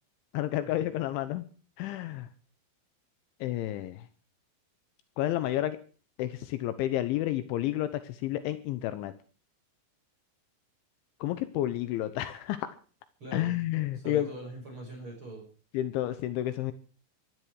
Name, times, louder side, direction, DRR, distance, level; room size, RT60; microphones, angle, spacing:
voice 1, 0.3-1.4 1.8-2.3 3.4-4.0 5.2-5.8 6.2-9.1 11.2-12.7 13.3-14.3 15.7-16.7, left 14 dB, 80° left, 12 dB, 3.3 m, -30 dB
voice 2, 13.2-13.6 13.9-15.4, right 2 dB, 25° right, -1 dB, 6.3 m, -42 dB
16.5 x 12.5 x 6.4 m, 0.40 s
omnidirectional pair, 5.4 m